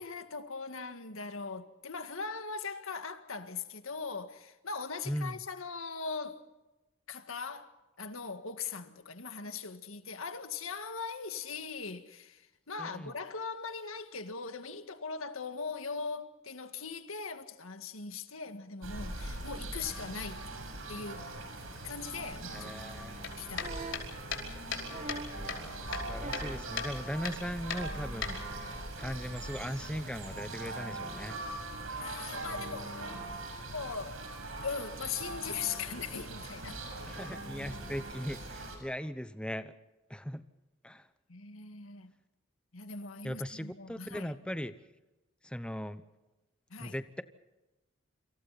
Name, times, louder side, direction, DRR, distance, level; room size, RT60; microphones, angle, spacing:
voice 1, 0.0-6.4 7.1-20.4 20.9-21.3 21.8-23.0 23.4-23.7 32.0-33.3 33.7-34.2 34.6-36.8 41.3-42.1 42.7-44.3 46.7-47.0, left 5 dB, 90° left, 1.9 m, -40 dB
voice 2, 12.8-13.1 22.5-23.2 25.3-31.4 37.1-39.7 40.1-40.4 40.8-41.1 43.2-44.7 45.4-46.0 46.8-47.2, equal, 5° left, 0.9 m, -39 dB
sound 1, 18.8-38.8, right 2 dB, 80° right, 6.6 m, -41 dB
sound 2, 23.2-25.2 25.5-26.5 26.8-26.9 27.2-27.4 27.7-28.7, left 6 dB, 65° left, 5.1 m, -37 dB
sound 3, 23.5-24.1 24.9-25.4 26.2-26.7 27.9-28.0, right 3 dB, 35° right, 1.8 m, -42 dB
28.5 x 26.5 x 4.3 m
head